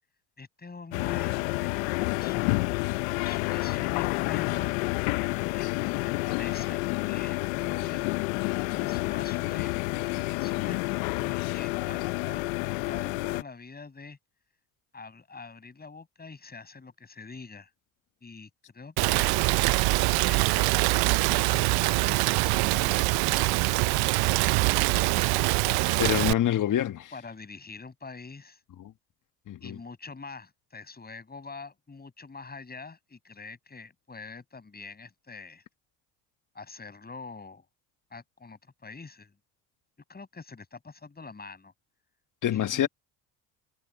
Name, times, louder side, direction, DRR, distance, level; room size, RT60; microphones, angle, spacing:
voice 1, 0.4-2.6 3.2-4.7 5.5-8.1 8.7-14.2 14.9-17.7 18.2-19.4 20.2-23.6 24.7-25.2 25.6-26.1 27.1-28.6 29.6-35.6 36.5-37.6 38.1-39.3 40.1-41.7 42.5-42.9, left 4 dB, 25° left, 7.9 m, -45 dB
sound 1, 0.9-13.4, left 25 dB, 80° left, 0.9 m, -29 dB
Rain, 19.0-26.3, right 24 dB, 65° right, 0.7 m, -24 dB
voice 2, 26.0-27.1 28.8-28.9 29.5-29.8 42.4-42.9, left 11 dB, 50° left, 1.8 m, -26 dB
hypercardioid pair, 75°, 40 cm